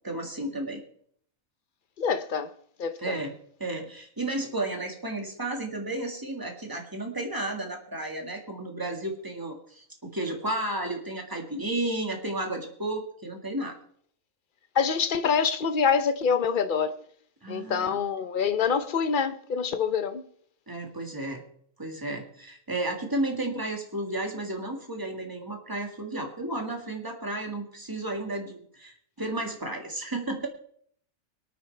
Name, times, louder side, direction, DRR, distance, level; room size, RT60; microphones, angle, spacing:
voice 1, 0.0-0.8 3.0-3.3 3.6-13.8 17.4-18.1 20.7-21.4 21.8-30.5, right 2 dB, 15° right, 1.8 m, -33 dB
voice 2, 2.0-2.5 2.8-3.1 14.7-17.0 17.5-20.2, left 6 dB, 45° left, 0.7 m, -26 dB
24.5 x 9.2 x 3.3 m
omnidirectional pair, 1.5 m